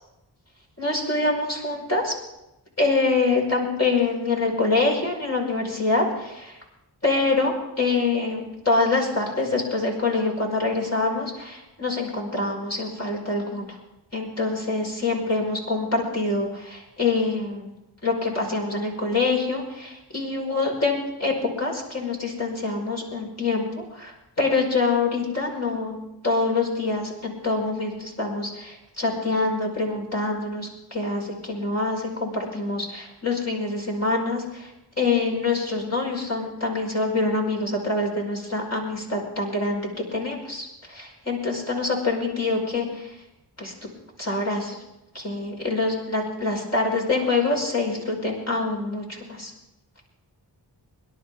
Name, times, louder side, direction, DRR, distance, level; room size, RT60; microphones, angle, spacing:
voice 1, 0.8-2.1 2.8-6.6 7.0-13.8 14.1-17.7 18.0-34.7 35.0-43.1 43.6-43.7 44.2-44.8 45.1-49.5, left 3 dB, 40° left, -1 dB, 5.2 m, -25 dB
26.5 x 11.5 x 3.8 m, 0.93 s
cardioid pair, 55°, 41 cm